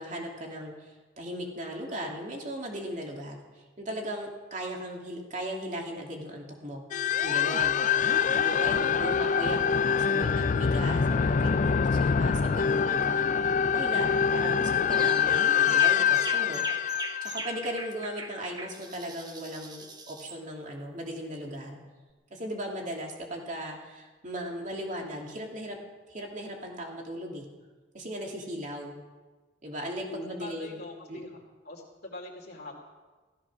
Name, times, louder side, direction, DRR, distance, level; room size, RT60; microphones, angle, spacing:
voice 1, 0.0-6.8 7.2-7.8 8.3-13.3 13.7-21.8 22.3-25.8 26.1-27.4 27.9-29.0 29.6-30.8 31.1-31.2, equal, 40° right, 0 dB, 2.7 m, -37 dB
sound 1, 6.9-18.1, left 7 dB, 40° left, 0.4 m, -25 dB
voice 2, 7.8-8.4 30.1-31.4 31.6-32.7, left 2 dB, 60° left, -3 dB, 2.6 m, -43 dB
sound 2, 14.9-15.3 15.7-20.4, right 3 dB, 20° right, 1.1 m, -41 dB
16.0 x 14.0 x 6.1 m, 1.3 s
head